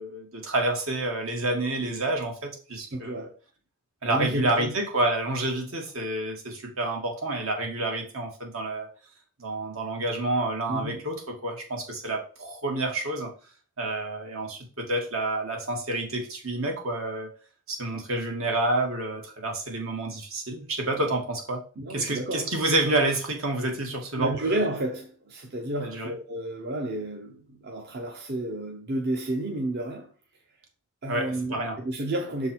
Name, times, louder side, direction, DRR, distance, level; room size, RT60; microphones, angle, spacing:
voice 1, 0.0-3.3 4.0-8.9 9.4-13.3 13.8-17.3 17.7-21.6 21.9-24.3 25.8-26.1 31.1-31.8, right 2 dB, 75° right, 2.0 m, -29 dB
voice 2, 2.9-3.4 4.0-4.7 10.7-11.0 21.8-22.5 24.2-30.1 31.0-32.5, right 1 dB, 50° right, 0.8 m, -31 dB
6.7 x 3.9 x 4.4 m
head